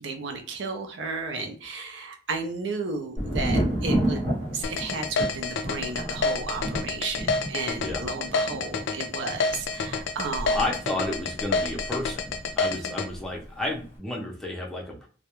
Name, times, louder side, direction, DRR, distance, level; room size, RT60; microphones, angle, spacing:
voice 1, 0.0-4.2 4.5-10.6 12.9-13.0, right 3 dB, 70° right, 5 dB, 0.5 m, -33 dB
Thunder, 3.2-12.8 13.1-13.8, right 1 dB, 45° right, 0.9 m, -31 dB
sound 1, 4.6-13.1, left 4 dB, 70° left, 0.3 m, -28 dB
voice 2, 10.5-12.3 12.6-15.1, left 2 dB, 5° left, -2 dB, 0.5 m, -31 dB
2.3 x 2.0 x 2.9 m, 0.40 s
head